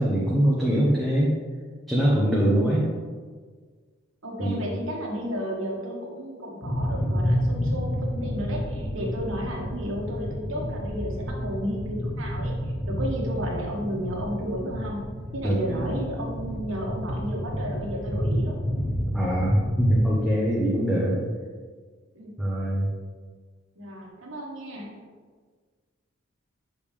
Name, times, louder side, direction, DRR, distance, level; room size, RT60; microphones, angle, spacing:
voice 1, 0.0-1.4 1.9-2.9 4.4-4.6 15.4-15.9 19.1-21.2 22.4-22.9, equal, ahead, -7 dB, 0.9 m, -23 dB
voice 2, 2.4-2.9 4.2-15.0 15.3-18.6 22.1-22.3 23.8-24.9, equal, 75° right, -1 dB, 1.4 m, -33 dB
sound 1, 6.6-20.1, equal, 35° left, 0.9 m, -30 dB
7.1 x 5.2 x 3.4 m, 1.5 s
head